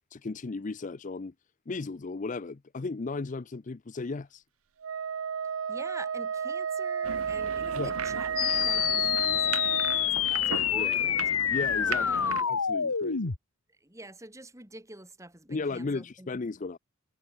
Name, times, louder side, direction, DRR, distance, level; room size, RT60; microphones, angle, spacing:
voice 1, 0.1-1.3 1.7-4.4 7.7-8.0 10.7-10.9 11.5-12.1 12.4-13.3 15.5-16.8, left 3 dB, 35° left, 0.5 m, -35 dB
Wind instrument woodwind instrument, 4.8-10.1, right 7 dB, 70° right, 0.5 m, -32 dB
voice 2, 5.7-11.2 11.9-12.5 13.8-16.3, right 2 dB, 15° right, 3.0 m, -46 dB
sound 1, 7.0-12.4, right 5 dB, 90° right, 1.8 m, -38 dB
sound 2, 8.4-13.4, left 10 dB, 85° left, 1.4 m, -27 dB
head